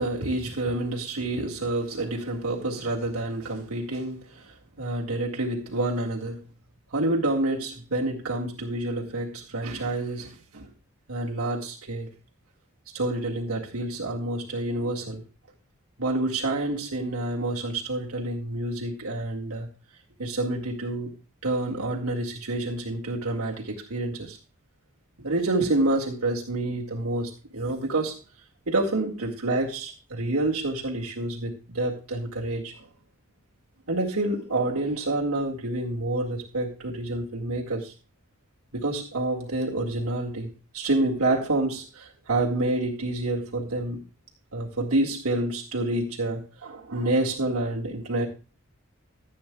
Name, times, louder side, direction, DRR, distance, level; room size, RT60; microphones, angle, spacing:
voice 1, 0.0-4.4 4.8-6.4 6.9-10.7 11.1-12.1 12.9-15.2 16.0-19.7 20.2-21.1 21.4-24.4 25.2-28.2 28.7-32.7 33.9-37.9 38.7-44.0 44.5-48.3, right 2 dB, 90° right, 2.0 m, -28 dB
15.0 x 8.6 x 2.3 m
head